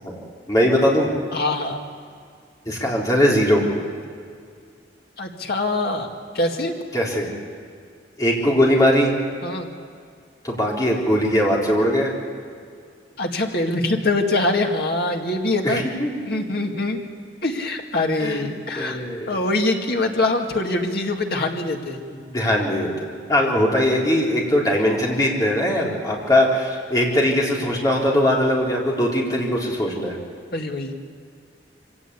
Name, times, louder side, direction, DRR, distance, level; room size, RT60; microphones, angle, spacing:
voice 1, 0.5-1.1 2.7-3.6 6.9-7.3 8.2-9.1 10.4-12.1 15.6-16.4 18.2-18.4 18.8-19.4 22.1-30.2, equal, 20° left, -3 dB, 4.0 m, -20 dB
voice 2, 1.3-1.8 5.2-6.1 6.3-6.7 9.4-9.7 13.2-15.8 16.3-17.0 17.4-19.0 19.3-22.0 30.5-31.0, left 2 dB, 55° left, 2 dB, 2.2 m, -23 dB
24.5 x 17.0 x 8.4 m, 2.2 s
head